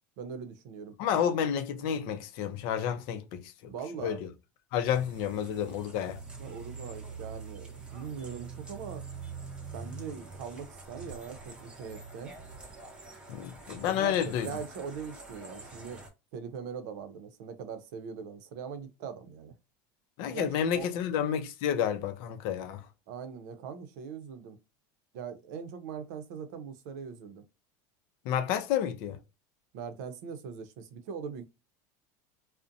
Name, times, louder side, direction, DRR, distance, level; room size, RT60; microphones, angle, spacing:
voice 1, 0.2-0.9 3.7-4.2 6.4-9.0 9.7-12.3 13.9-16.0 16.3-19.5 20.3-20.9 23.1-24.6 25.1-27.4 29.7-31.4, right 6 dB, 70° right, 0.6 m, -41 dB
voice 2, 1.0-3.7 4.0-4.3 4.7-6.2 13.3-14.5 20.2-22.8 28.3-29.2, left 9 dB, 60° left, 0.5 m, -30 dB
sound 1, 4.8-16.1, right 4 dB, 10° right, 0.7 m, -45 dB
2.6 x 2.1 x 2.5 m
supercardioid pair, 145°, 10 cm